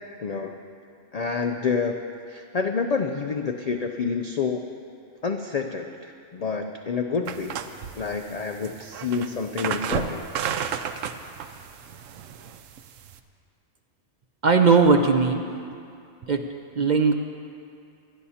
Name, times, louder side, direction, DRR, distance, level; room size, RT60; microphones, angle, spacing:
voice 1, 0.2-0.6 1.1-2.0 2.3-4.6 5.2-7.6 8.0-10.3, left 5 dB, 75° left, 5 dB, 0.3 m, -28 dB
sound 1, 7.3-13.2, right 8 dB, 80° right, 1.0 m, -33 dB
voice 2, 14.4-15.4 16.3-16.4 16.8-17.1, right 4 dB, 50° right, 4 dB, 0.6 m, -18 dB
25.5 x 11.0 x 2.8 m, 2.4 s
omnidirectional pair, 1.3 m